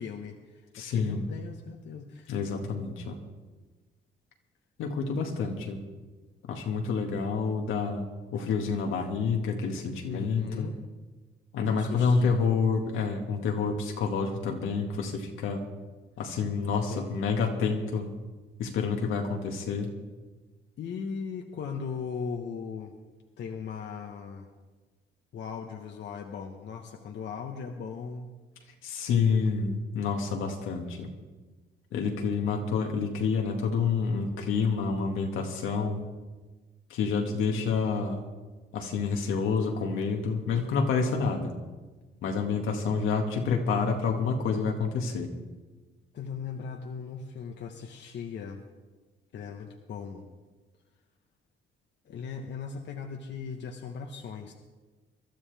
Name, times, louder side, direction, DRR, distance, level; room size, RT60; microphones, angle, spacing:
voice 1, 0.0-2.3 10.0-10.8 11.7-12.5 16.9-17.1 20.8-22.9 23.4-24.5 25.3-28.3 29.1-29.3 37.5-38.1 46.1-48.6 49.3-50.2 52.0-54.5, left 6 dB, 65° left, 3 dB, 1.2 m, -38 dB
voice 2, 0.7-1.3 2.3-3.2 4.8-5.8 6.4-8.1 8.3-10.7 11.5-15.6 16.2-18.1 18.6-19.9 28.8-31.1 31.9-36.0 36.9-38.2 38.7-41.5 42.2-45.3, left 5 dB, 85° left, 2 dB, 1.9 m, -28 dB
22.0 x 12.5 x 3.5 m, 1.3 s
cardioid pair, 90°, 20 cm